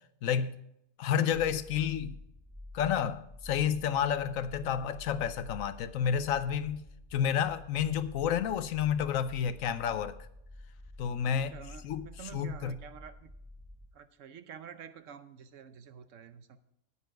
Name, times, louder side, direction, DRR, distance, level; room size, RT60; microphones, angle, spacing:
voice 1, 0.2-0.5 1.0-2.2 2.7-10.3 11.0-11.5 11.8-12.8, left 8 dB, 70° left, 1.0 m, -30 dB
sound 1, 1.3-13.9, left 1 dB, 5° right, 1.0 m, -49 dB
voice 2, 4.6-4.9 11.2-13.3 13.9-16.6, right 8 dB, 65° right, 1.0 m, -49 dB
10.0 x 9.5 x 4.6 m
omnidirectional pair, 1.5 m